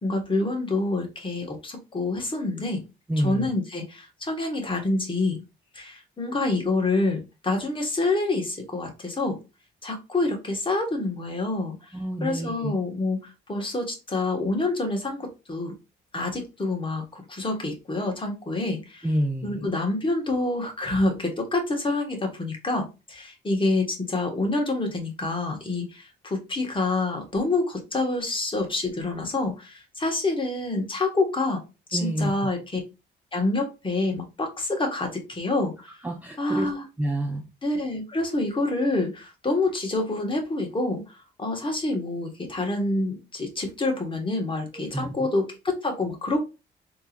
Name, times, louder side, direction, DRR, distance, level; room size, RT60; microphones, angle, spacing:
voice 1, 0.0-2.8 3.2-5.4 5.7-9.4 9.8-11.8 12.2-15.8 16.1-19.1 19.4-31.6 31.9-32.8 33.3-36.0 36.4-36.8 37.6-46.4, left 2 dB, 25° left, 1.4 m, -27 dB
voice 2, 3.1-3.5 11.9-12.7 19.0-19.7 31.9-32.5 36.0-36.7 37.0-37.5 44.9-45.1, right 1 dB, 10° right, 0.6 m, -28 dB
3.6 x 2.9 x 2.5 m
cardioid pair, 90°, 20 cm